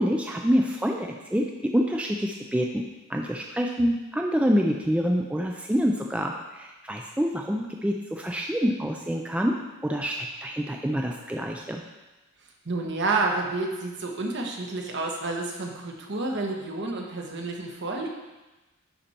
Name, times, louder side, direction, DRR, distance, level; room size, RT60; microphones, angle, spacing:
voice 1, 0.0-9.6 9.8-10.1 10.4-11.8, equal, 5° right, 1 dB, 0.4 m, -26 dB
voice 2, 12.6-18.1, right 3 dB, 55° right, 1 dB, 1.1 m, -29 dB
10.5 x 4.3 x 4.3 m, 1.1 s
head